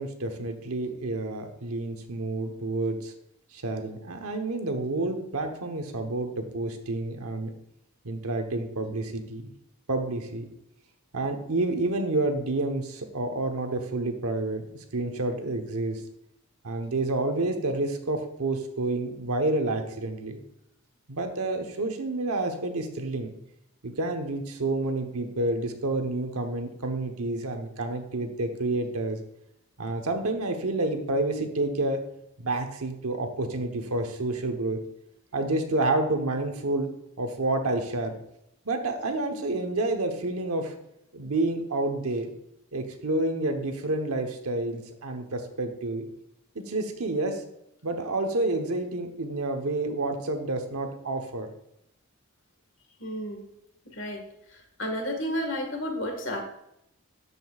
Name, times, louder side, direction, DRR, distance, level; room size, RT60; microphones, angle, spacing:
voice 1, 0.0-3.1 3.5-7.5 8.0-9.5 9.9-10.5 11.1-14.7 14.9-16.0 16.6-20.4 21.1-23.3 23.8-29.2 29.8-32.1 32.4-34.8 35.3-36.9 37.2-38.2 38.6-40.7 41.1-42.3 42.7-46.1 46.5-47.4 47.8-51.5, right 2 dB, 85° right, 5 dB, 1.1 m, -29 dB
voice 2, 53.0-53.4 53.9-54.2 54.5-56.4, equal, 60° left, 2 dB, 1.7 m, -32 dB
12.5 x 5.4 x 2.4 m, 0.80 s
head